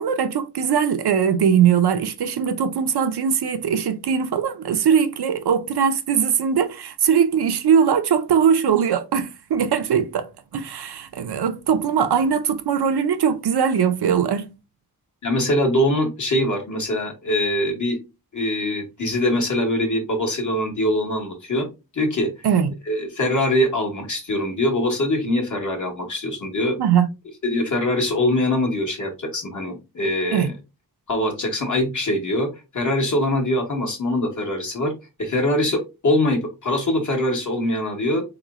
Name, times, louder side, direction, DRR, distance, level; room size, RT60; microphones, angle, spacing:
voice 1, 0.0-10.3 10.5-14.5 22.4-22.7 26.8-27.1 30.3-30.5, right 7 dB, 80° right, 0.6 m, -20 dB
voice 2, 15.2-18.0 18.3-21.7 21.9-22.3 22.9-26.8 27.4-30.5 31.1-34.9 35.2-38.2, left 1 dB, 50° left, 1.2 m, -23 dB
3.9 x 2.9 x 2.4 m
wide cardioid pair, 125°, 38 cm